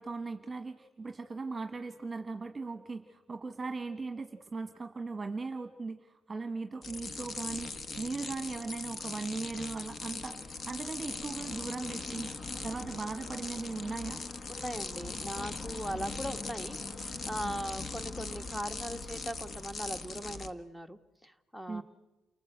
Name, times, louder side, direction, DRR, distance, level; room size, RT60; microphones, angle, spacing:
voice 1, 0.0-12.3 12.6-14.2 21.7-21.8, right 3 dB, 25° right, 7 dB, 1.4 m, -38 dB
sound 1, 6.8-20.5, left 3 dB, 45° left, 1.4 m, -40 dB
voice 2, 14.5-21.8, equal, 5° left, 10 dB, 1.4 m, -39 dB
29.5 x 19.5 x 8.0 m, 1.2 s
cardioid pair, 90°, 0 cm